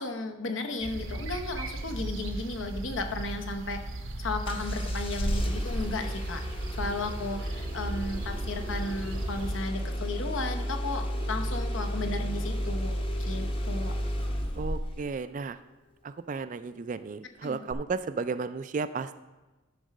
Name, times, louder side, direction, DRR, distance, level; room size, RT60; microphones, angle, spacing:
voice 1, 0.0-6.4 6.8-12.9 13.2-13.9 17.4-17.6, left 2 dB, 65° left, 5 dB, 0.9 m, -34 dB
sound 1, 0.8-9.6, right 1 dB, 70° right, 0.8 m, -36 dB
Engine starting, 4.5-15.1 17.7-17.8, equal, 25° left, 0.9 m, -32 dB
voice 2, 14.5-15.6 16.0-19.2, right 4 dB, 40° right, 12 dB, 0.3 m, -34 dB
11.5 x 4.1 x 6.4 m, 1.1 s
head